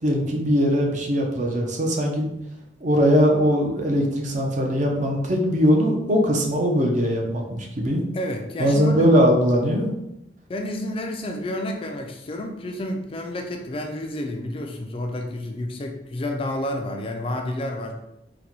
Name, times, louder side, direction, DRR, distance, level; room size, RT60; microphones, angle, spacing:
voice 1, 0.0-2.3 2.8-8.0 8.6-9.9, equal, 45° right, 1 dB, 0.6 m, -20 dB
voice 2, 8.1-9.1 10.5-17.9, left 1 dB, 30° left, 3 dB, 0.3 m, -30 dB
3.9 x 2.2 x 3.0 m, 0.85 s
head